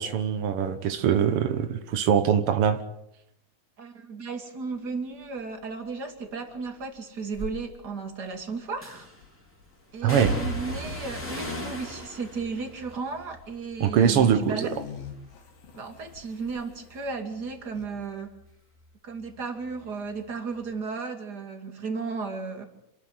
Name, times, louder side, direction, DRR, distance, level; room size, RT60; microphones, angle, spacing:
voice 1, 0.0-2.8 10.0-10.4 13.8-14.7, right 8 dB, 90° right, 9 dB, 1.2 m, -23 dB
voice 2, 3.8-9.1 9.9-14.7 15.7-18.4 19.0-22.6, right 4 dB, 30° right, 5 dB, 2.5 m, -34 dB
sound 1, 4.7-17.2 17.5-17.9, left 6 dB, 70° left, 3.9 m, -46 dB
sound 2, 7.3-7.6 8.8-9.3 10.1-14.3 14.6-15.3 15.6-18.9 19.2-20.3 20.6-20.7, right 1 dB, 5° left, 2.9 m, -37 dB
27.5 x 13.0 x 9.6 m, 0.81 s
omnidirectional pair, 4.3 m